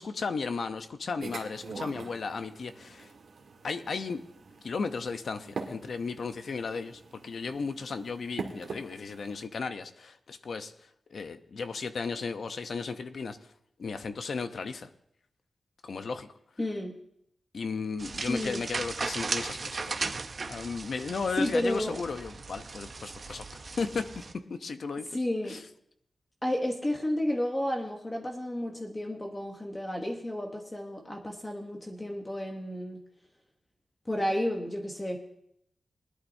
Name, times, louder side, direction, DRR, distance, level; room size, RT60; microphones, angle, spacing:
voice 1, 0.0-3.1 3.6-4.2 4.6-10.7 11.1-13.4 13.8-14.9 15.8-16.3 17.5-20.1 20.5-23.4 23.8-24.2 24.5-25.2 25.5-25.6, left 4 dB, 55° left, 9 dB, 0.7 m, -35 dB
sound 1, 1.2-9.5, right 4 dB, 75° right, 1.7 m, -44 dB
voice 2, 16.6-16.9 18.3-18.6 21.4-22.0 25.1-25.6 26.4-33.0 34.1-35.2, left 1 dB, 15° left, 1 dB, 1.0 m, -31 dB
sound 2, 18.0-24.3, right 4 dB, 40° right, 0.7 m, -37 dB
20.5 x 11.0 x 2.7 m, 0.74 s
wide cardioid pair, 180°, 0 cm